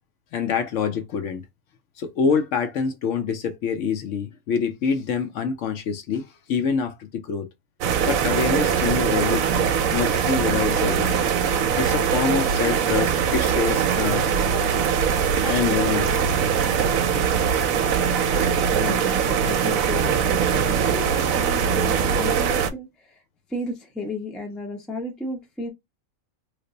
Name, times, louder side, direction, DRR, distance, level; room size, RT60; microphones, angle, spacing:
voice 1, 0.3-1.4 2.0-7.5 8.1-11.1 11.8-14.3 15.4-16.1, left 6 dB, 70° left, 0.9 m, -26 dB
sound 1, 7.8-22.7, right 7 dB, 75° right, 0.9 m, -22 dB
voice 2, 18.7-23.1 23.5-25.7, left 1 dB, ahead, 0.4 m, -33 dB
3.2 x 2.0 x 3.7 m
omnidirectional pair, 1.5 m